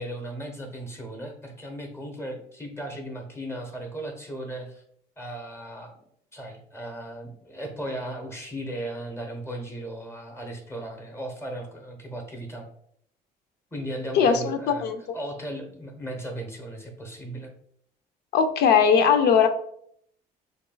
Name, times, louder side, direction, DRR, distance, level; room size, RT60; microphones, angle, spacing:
voice 1, 0.0-4.8 5.2-6.0 6.3-12.7 13.7-14.9 15.1-17.5, right 1 dB, 15° left, 3 dB, 0.9 m, -36 dB
voice 2, 14.1-15.0 18.3-19.5, left 7 dB, 70° left, 9 dB, 0.5 m, -19 dB
6.3 x 2.3 x 2.3 m, 0.68 s
cardioid pair, 110°, 17 cm